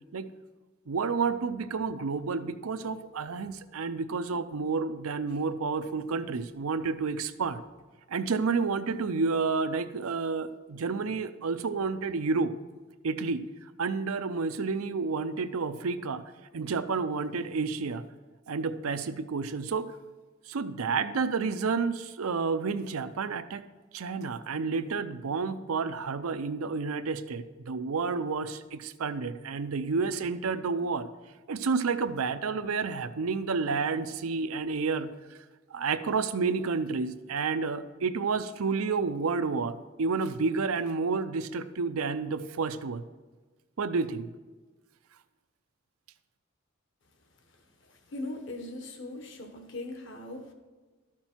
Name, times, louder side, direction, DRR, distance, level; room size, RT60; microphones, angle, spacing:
voice 1, 0.9-7.6 8.1-12.5 13.0-13.4 13.8-16.2 16.5-18.0 18.5-19.9 20.5-23.6 23.9-31.1 31.5-35.1 35.7-43.0 43.8-44.3, right 4 dB, 85° right, 11 dB, 0.6 m, -30 dB
voice 2, 47.8-50.5, left 2 dB, 60° left, 5 dB, 1.2 m, -40 dB
12.5 x 6.0 x 4.5 m, 1.3 s
head